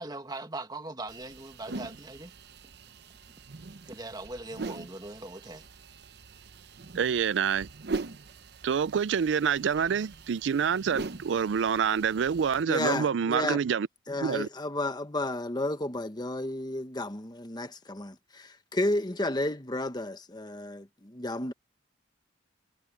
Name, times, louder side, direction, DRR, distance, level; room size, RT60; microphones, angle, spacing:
voice 1, 0.0-2.3 3.9-5.7, right 2 dB, 20° right, 1.8 m, -40 dB
sound 1, 1.1-12.6, right 3 dB, 60° right, 0.8 m, -42 dB
voice 2, 7.0-7.7 8.6-13.9 14.2-14.5, right 7 dB, 85° right, 0.4 m, -27 dB
voice 3, 12.7-13.6 14.1-21.5, left 1 dB, 25° left, 1.3 m, -32 dB
head